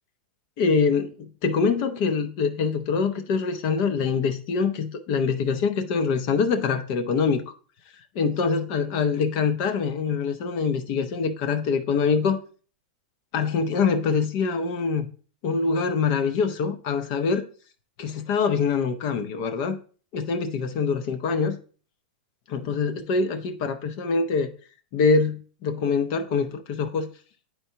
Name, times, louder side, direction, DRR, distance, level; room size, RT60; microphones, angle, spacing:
voice 1, 0.6-7.5 8.1-12.4 13.3-15.1 15.4-17.5 18.0-19.8 20.1-21.6 22.5-24.5 24.9-27.1, left 5 dB, 35° left, 0.6 m, -24 dB
9.7 x 4.5 x 2.8 m
supercardioid pair, 170°, 5 cm